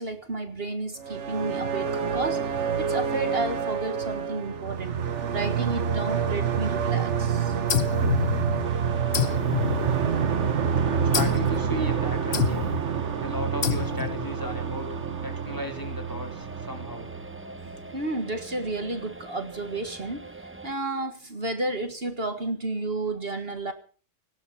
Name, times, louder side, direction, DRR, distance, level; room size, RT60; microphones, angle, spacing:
voice 1, 0.0-7.6 10.5-10.7 17.9-20.2 20.6-23.7, right 2 dB, 50° right, 8 dB, 1.9 m, -32 dB
sound 1, 1.0-17.8, right 7 dB, 70° right, 1.5 m, -27 dB
sound 2, 7.7-8.7 9.1-10.4 11.1-11.6 12.3-12.9 13.6-14.3, left 8 dB, 60° left, 1.2 m, -28 dB
sound 3, 8.6-20.7, right 2 dB, 10° right, 0.8 m, -44 dB
voice 2, 10.3-12.7 13.2-14.9 15.2-17.1, equal, 15° left, 4 dB, 3.1 m, -36 dB
18.5 x 17.0 x 4.2 m, 0.40 s
omnidirectional pair, 1.3 m